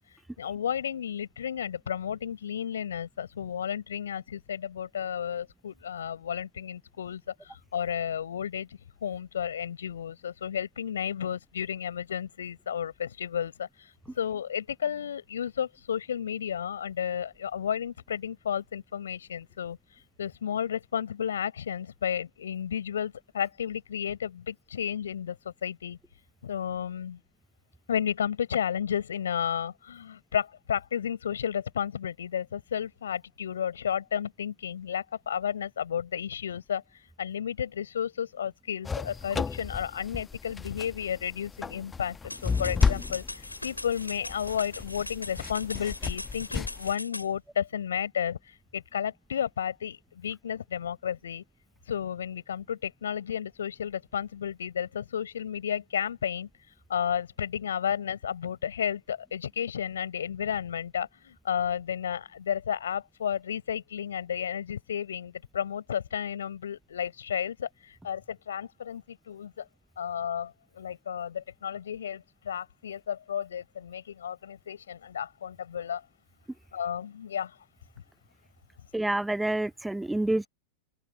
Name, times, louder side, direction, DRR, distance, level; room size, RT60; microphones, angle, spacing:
voice 1, 0.4-8.7 9.0-19.8 20.2-26.0 26.4-27.2 27.9-36.8 37.2-51.4 51.9-56.5 56.9-69.7 70.0-76.0 76.7-77.6, left 8 dB, 65° left, 7.2 m, -32 dB
sound 1, 38.8-46.9, left 5 dB, 15° left, 1.1 m, -32 dB
sound 2, 42.3-47.3, left 2 dB, 85° left, 5.5 m, -40 dB
voice 2, 78.9-80.5, right 1 dB, 5° right, 0.6 m, -28 dB
open air
figure-of-eight pair, 90°, 0 cm